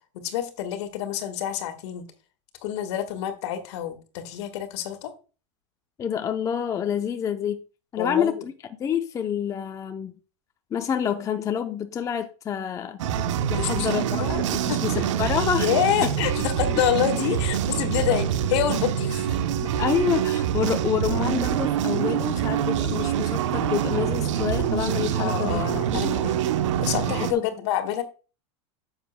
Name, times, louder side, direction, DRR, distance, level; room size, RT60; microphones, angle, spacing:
voice 1, 0.1-2.1 2.6-5.1 8.0-8.4 13.5-14.4 14.7-15.0 15.6-19.4 25.2-26.4 26.8-28.0, left 10 dB, 65° left, 1.6 m, -27 dB
voice 2, 6.0-7.6 7.9-8.5 8.8-10.1 10.7-13.0 13.5-15.7 16.0-16.1 19.6-26.2 27.1-27.5, left 8 dB, 20° left, 0.6 m, -28 dB
sound 1, 13.0-27.3, right 9 dB, 80° right, 0.8 m, -25 dB
9.9 x 7.3 x 2.2 m
supercardioid pair, 135°, 15 cm